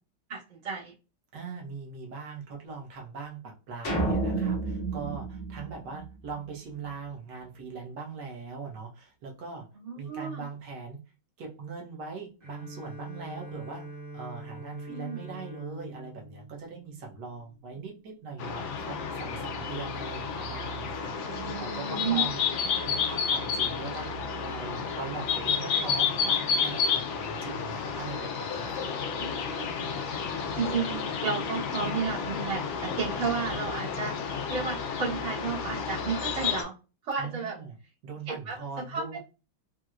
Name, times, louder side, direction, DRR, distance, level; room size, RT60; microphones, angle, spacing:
voice 1, 0.3-0.9 9.7-10.4 14.9-15.2 21.2-22.2 29.2-29.7 30.6-34.1 34.5-36.7 37.0-37.6 38.3-38.6 38.9-39.2, right 5 dB, 80° right, -8 dB, 2.1 m, -33 dB
voice 2, 1.3-9.7 9.9-11.0 11.4-22.4 22.8-29.4 37.2-37.7 38.0-39.2, right 4 dB, 60° right, 0 dB, 1.3 m, -41 dB
sound 1, 3.8-6.3, right 3 dB, 55° left, 0.8 m, -30 dB
Bowed string instrument, 12.4-17.7, right 2 dB, 35° right, 0.9 m, -44 dB
sound 2, 18.4-36.6, left 6 dB, 75° left, 1.3 m, -31 dB
4.3 x 2.1 x 2.4 m, 0.32 s
omnidirectional pair, 2.3 m